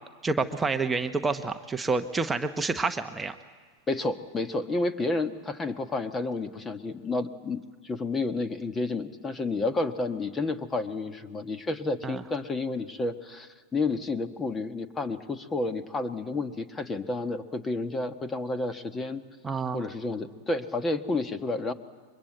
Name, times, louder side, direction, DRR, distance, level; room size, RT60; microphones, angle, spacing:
voice 1, 0.2-3.3 12.0-12.2 19.4-19.8, right 4 dB, 10° right, 6 dB, 1.1 m, -28 dB
voice 2, 3.9-19.2 19.7-21.7, left 3 dB, 15° left, 10 dB, 1.5 m, -30 dB
29.5 x 23.5 x 8.2 m, 1.5 s
figure-of-eight pair, 90°, 0 cm